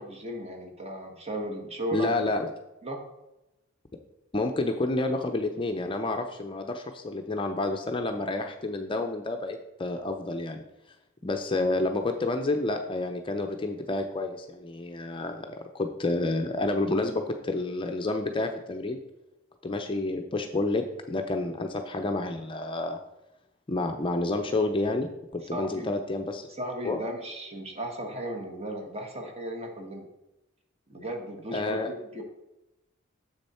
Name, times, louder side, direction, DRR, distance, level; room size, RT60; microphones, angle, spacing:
voice 1, 0.0-2.1 2.8-3.0 25.5-25.9 26.6-30.1 30.9-32.2, equal, 30° right, 2 dB, 1.3 m, -35 dB
voice 2, 1.9-2.5 4.3-10.6 11.2-19.0 19.6-23.0 23.7-26.5 26.8-27.0 31.5-31.9, left 2 dB, 25° left, 5 dB, 0.5 m, -29 dB
7.0 x 6.6 x 4.3 m, 0.96 s
head